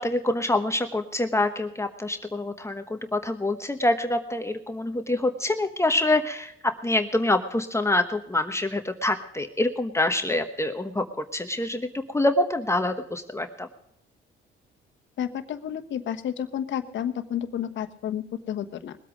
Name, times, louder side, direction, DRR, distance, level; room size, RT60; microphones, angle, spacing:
voice 1, 0.0-13.7, left 2 dB, 15° left, 6 dB, 1.0 m, -26 dB
voice 2, 15.2-19.0, left 9 dB, 70° left, 9 dB, 1.2 m, -31 dB
21.0 x 8.3 x 5.1 m, 0.77 s
cardioid pair, 90°, 20 cm